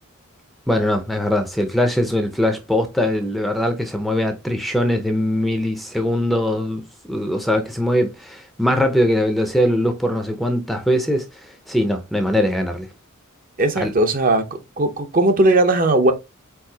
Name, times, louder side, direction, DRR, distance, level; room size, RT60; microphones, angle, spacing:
voice 1, 0.7-12.9 13.8-13.9, equal, ahead, 0.5 m, -21 dB
voice 2, 13.6-16.1, right 2 dB, 40° right, 0.7 m, -18 dB
4.7 x 4.1 x 2.7 m
head